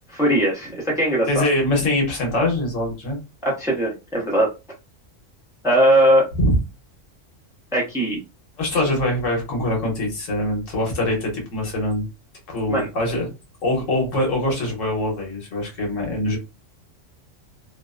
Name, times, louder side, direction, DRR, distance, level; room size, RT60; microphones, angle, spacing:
voice 1, 0.1-1.5 3.4-4.5 5.6-6.3 7.7-8.2 12.7-12.9, right 1 dB, 5° right, -2 dB, 0.5 m, -19 dB
voice 2, 1.3-3.2 6.4-6.6 8.6-12.1 12.5-13.3 13.6-16.4, left 1 dB, 80° left, 0 dB, 1.3 m, -23 dB
2.8 x 2.0 x 2.3 m, 0.26 s
omnidirectional pair, 1.3 m